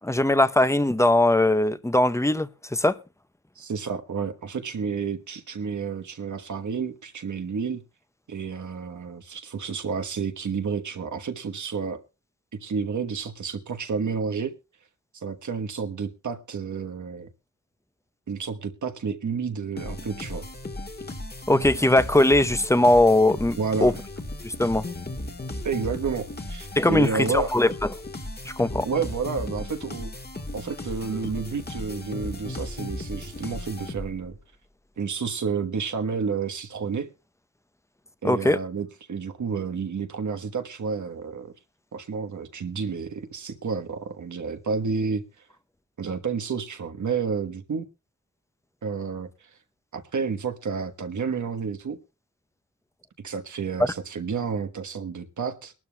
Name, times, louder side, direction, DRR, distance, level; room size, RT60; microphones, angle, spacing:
voice 1, 0.0-3.0 21.5-23.9 24.4-24.9 26.7-27.9 28.4-28.9 38.2-38.6, left 1 dB, 10° left, 0.8 m, -20 dB
voice 2, 3.5-7.8 8.3-12.0 12.6-14.6 15.1-17.3 18.3-20.5 23.6-23.9 25.6-27.5 28.8-30.1 30.5-34.4 35.0-37.1 38.2-41.5 41.9-45.2 46.0-47.8 48.8-49.5 49.9-52.0 53.2-55.7, right 5 dB, 75° right, 1.3 m, -30 dB
sound 1, 19.8-34.3, left 1 dB, 30° left, 1.7 m, -36 dB
22.0 x 12.0 x 2.3 m
cardioid pair, 45°, 30 cm